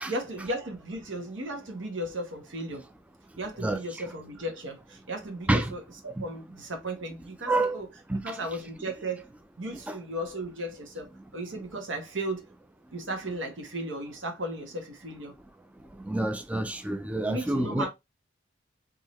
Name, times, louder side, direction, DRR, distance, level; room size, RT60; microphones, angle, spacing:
voice 1, 0.1-2.9 3.4-7.9 8.2-9.3 9.6-12.5 12.9-15.3 17.2-17.9, right 1 dB, 85° right, 1.2 m, -35 dB
voice 2, 7.5-7.8 8.1-8.4 9.9-10.0 16.1-17.9, right 2 dB, 5° right, 0.3 m, -27 dB
3.6 x 2.7 x 3.0 m
head